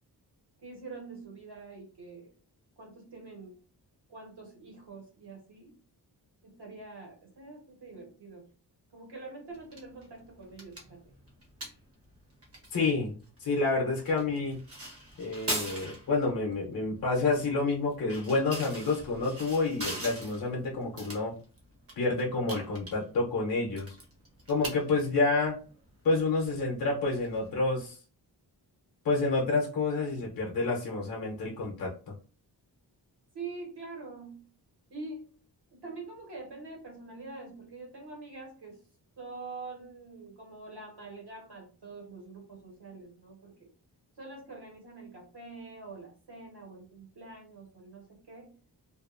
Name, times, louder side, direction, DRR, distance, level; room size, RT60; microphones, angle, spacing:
voice 1, 0.6-2.3 2.8-3.5 4.1-5.7 6.4-8.5 8.9-11.0 33.3-34.4 34.9-35.3 35.7-38.8 39.2-43.7 44.2-48.5, right 3 dB, 65° right, -1 dB, 1.3 m, -45 dB
sound 1, 9.5-27.9, right 1 dB, 35° right, 0.8 m, -43 dB
voice 2, 12.7-14.6 15.2-21.3 22.0-24.0 24.5-25.6 26.0-28.0 29.0-32.1, left 3 dB, 55° left, -2 dB, 0.7 m, -29 dB
2.6 x 2.3 x 2.4 m, 0.37 s
wide cardioid pair, 155°, 43 cm